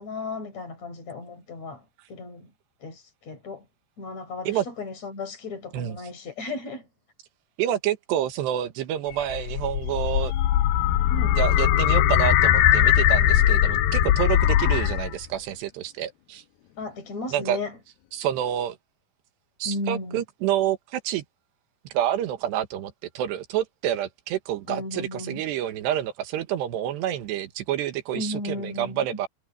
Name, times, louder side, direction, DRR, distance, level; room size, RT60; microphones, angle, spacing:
voice 1, 0.0-2.5 2.8-3.6 4.0-6.9 11.1-11.4 16.8-17.8 19.6-20.2 24.7-25.4 28.1-29.1, left 2 dB, 40° left, 6.1 m, -35 dB
voice 2, 7.6-10.3 11.3-16.4 17.3-17.6 18.1-18.8 19.6-21.2 21.9-29.3, right 11 dB, 90° right, 3.5 m, -28 dB
sound 1, 9.1-15.2, left 12 dB, 70° left, 2.7 m, -20 dB
omnidirectional pair, 4.8 m